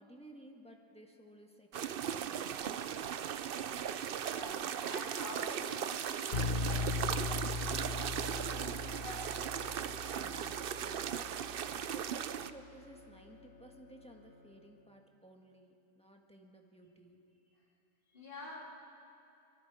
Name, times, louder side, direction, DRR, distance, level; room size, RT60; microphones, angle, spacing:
voice 1, 0.0-2.9 10.1-17.2, right 1 dB, 5° left, 1 dB, 1.7 m, -57 dB
sound 1, 1.7-12.5, right 8 dB, 55° right, 0.7 m, -38 dB
voice 2, 4.0-9.4 17.5-17.6 18.1-18.6, left 1 dB, 40° left, -5 dB, 3.2 m, -49 dB
sound 2, 6.3-12.1, left 4 dB, 65° left, 1.5 m, -39 dB
Bowed string instrument, 6.9-15.2, equal, 90° right, 2.5 m, -61 dB
24.0 x 24.0 x 5.1 m, 2.7 s
omnidirectional pair, 1.3 m